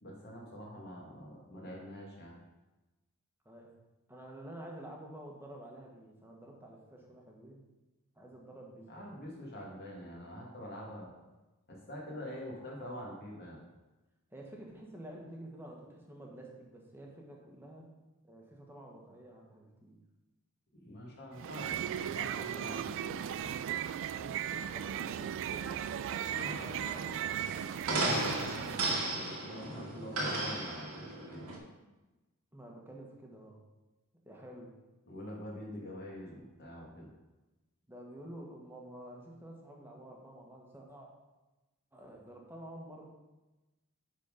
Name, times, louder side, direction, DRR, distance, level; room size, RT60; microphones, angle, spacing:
voice 1, 0.0-2.3 8.9-11.1 11.7-13.6 20.8-23.5 28.4-31.4 35.1-37.1, equal, 50° left, -2 dB, 2.0 m, -45 dB
voice 2, 4.1-7.6 8.2-9.1 14.3-17.9 18.2-20.0 24.1-27.5 32.5-33.6 34.2-34.7 37.9-41.1 41.9-43.0, right 1 dB, 10° right, -1 dB, 1.4 m, -50 dB
sound 1, 21.3-29.0, right 9 dB, 60° right, 0.3 m, -37 dB
sound 2, 26.3-31.6, right 2 dB, 80° right, 1.9 m, -35 dB
10.0 x 4.2 x 5.3 m, 1.1 s
head